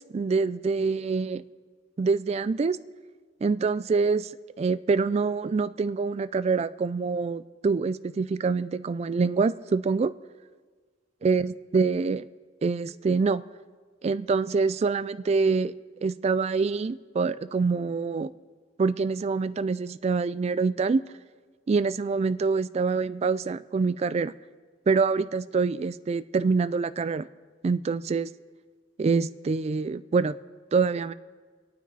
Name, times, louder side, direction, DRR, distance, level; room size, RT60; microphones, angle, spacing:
voice 1, 0.0-1.4 2.0-2.8 3.4-4.3 4.6-10.1 11.2-12.2 12.6-13.4 14.0-15.7 16.0-18.3 18.8-21.0 21.7-24.3 24.9-27.3 27.6-28.3 29.0-30.4 30.7-31.1, right 4 dB, 35° right, 16 dB, 0.3 m, -25 dB
25.5 x 9.2 x 4.1 m, 1.5 s
head